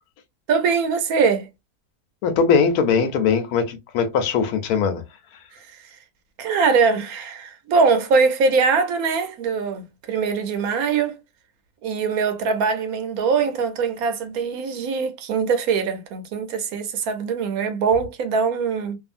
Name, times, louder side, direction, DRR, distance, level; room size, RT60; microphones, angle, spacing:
voice 1, 0.5-1.5 6.4-11.2 11.8-19.0, right 5 dB, 80° right, 1.1 m, -22 dB
voice 2, 2.2-5.0, left 6 dB, 85° left, 1.2 m, -20 dB
2.7 x 2.5 x 2.4 m
omnidirectional pair, 1.5 m